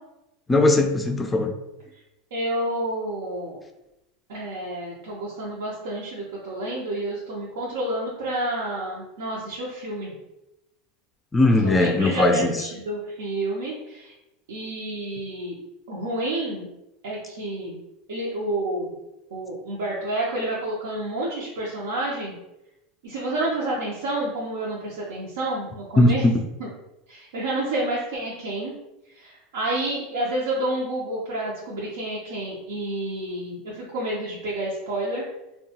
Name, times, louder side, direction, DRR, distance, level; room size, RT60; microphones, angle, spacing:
voice 1, 0.5-1.5 11.3-12.5 26.0-26.3, left 2 dB, 15° left, 4 dB, 0.3 m, -19 dB
voice 2, 2.3-3.6 4.3-10.1 11.6-14.1 14.5-15.6 15.9-16.7 17.0-17.8 18.1-18.9 19.3-22.3 23.0-26.3 26.6-26.7 27.1-28.7 29.1-35.2, right 1 dB, 85° right, -5 dB, 0.6 m, -29 dB
2.7 x 2.2 x 2.7 m, 0.92 s
supercardioid pair, 120°, 0 cm